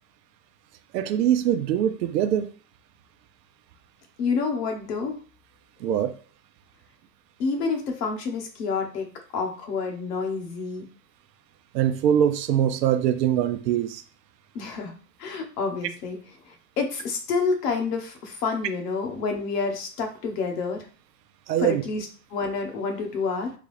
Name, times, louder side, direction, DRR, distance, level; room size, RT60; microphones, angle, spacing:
voice 1, 0.9-2.5 5.8-6.1 11.7-14.0 21.5-21.8, right 10 dB, 75° right, 0.6 m, -23 dB
voice 2, 4.2-5.2 7.4-9.1 9.3-10.9 14.5-14.9 15.2-16.2 16.5-20.9 21.6-23.5, left 4 dB, 65° left, 1.2 m, -28 dB
3.8 x 2.4 x 3.2 m
hypercardioid pair, 110°, 50 cm